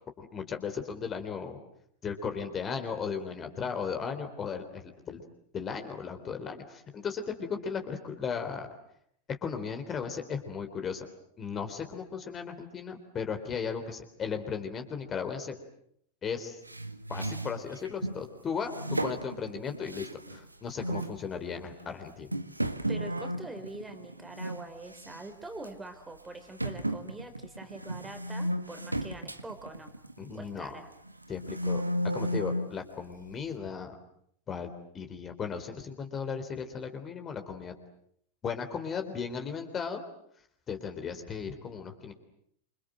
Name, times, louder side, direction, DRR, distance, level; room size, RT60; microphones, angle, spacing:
voice 1, 0.2-1.6 2.0-5.2 5.5-8.7 9.3-11.1 11.4-15.6 16.2-16.6 17.1-22.3 30.2-30.8 31.3-31.8 32.1-34.0 34.5-37.7 38.4-40.0 40.7-42.1, left 6 dB, 25° left, 6 dB, 3.6 m, -36 dB
sound 1, 16.7-18.2 18.7-20.5 20.8-21.2 21.8-21.9 22.3-24.6 24.9-25.3 25.6-25.7 26.6-30.6 31.1-32.8, equal, 85° right, 1.6 m, -34 dB
voice 2, 22.9-29.9 30.3-30.9, right 2 dB, 10° right, 8 dB, 3.7 m, -44 dB
28.0 x 26.5 x 7.8 m, 0.71 s
figure-of-eight pair, 90°, 0 cm